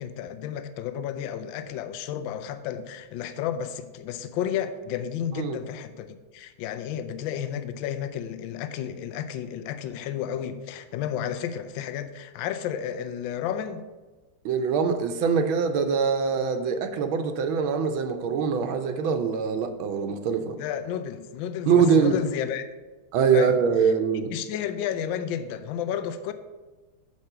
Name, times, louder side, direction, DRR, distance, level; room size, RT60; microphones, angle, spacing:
voice 1, 0.0-13.8 20.6-22.6 23.3-23.6 23.8-23.9 24.3-26.3, left 9 dB, 75° left, 10 dB, 1.3 m, -32 dB
voice 2, 14.4-20.5 21.7-22.2 23.1-24.3, right 6 dB, 80° right, 7 dB, 1.5 m, -23 dB
6.8 x 5.3 x 6.6 m, 1.3 s
omnidirectional pair, 2.2 m